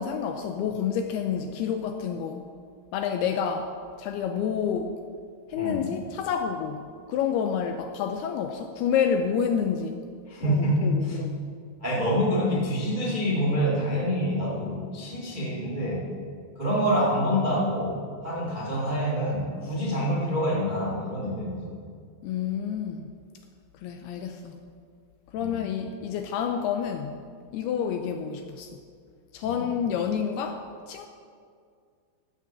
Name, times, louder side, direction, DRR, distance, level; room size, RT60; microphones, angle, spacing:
voice 1, 0.0-2.5 2.9-3.7 4.0-4.9 5.5-10.1 10.4-11.5 22.2-23.1 23.8-24.6 25.3-27.3 27.5-28.8 29.3-31.1, left 7 dB, 80° left, 6 dB, 2.4 m, -29 dB
voice 2, 10.3-11.2 11.8-16.1 16.5-18.0 18.2-21.6 25.3-25.5 29.4-29.6, equal, 35° right, -4 dB, 0.7 m, -26 dB
15.5 x 5.5 x 7.3 m, 2.2 s
omnidirectional pair, 5.0 m